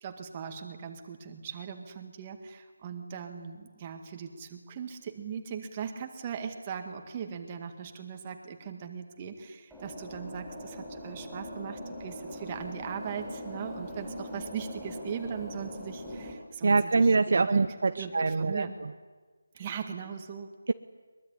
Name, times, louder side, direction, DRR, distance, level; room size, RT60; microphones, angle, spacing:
voice 1, 0.0-17.6 18.0-18.7 19.6-20.5, right 7 dB, 20° right, 5 dB, 2.0 m, -39 dB
sound 1, 9.7-16.3, left 1 dB, ahead, 5.2 m, -41 dB
voice 2, 16.6-18.9, right 3 dB, 50° right, 9 dB, 0.9 m, -25 dB
23.0 x 22.5 x 10.0 m, 1.4 s
figure-of-eight pair, 175°, 0 cm